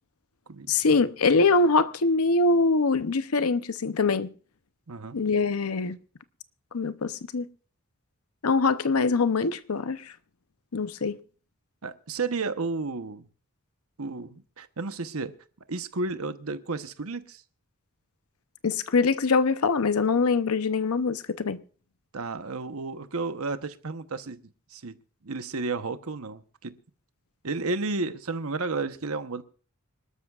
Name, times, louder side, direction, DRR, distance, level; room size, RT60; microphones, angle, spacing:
voice 1, 0.7-4.3 5.1-6.0 6.7-7.5 8.4-10.1 10.7-11.2 18.6-21.6, left 4 dB, 90° left, 0.7 m, -23 dB
voice 2, 4.9-5.2 11.8-13.3 14.0-15.4 15.7-17.4 22.1-24.4 24.7-25.0 25.2-26.8 27.4-29.4, right 3 dB, 85° right, 1.0 m, -32 dB
26.0 x 12.5 x 2.4 m
head